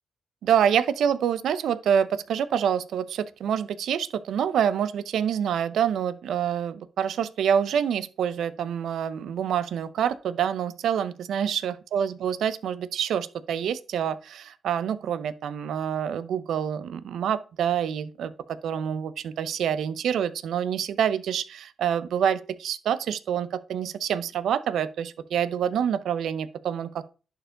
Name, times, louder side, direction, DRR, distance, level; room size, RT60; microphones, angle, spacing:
voice 1, 0.4-27.1, right 8 dB, 80° right, 0.7 m, -27 dB
11.0 x 4.6 x 3.8 m
cardioid pair, 80°, 0 cm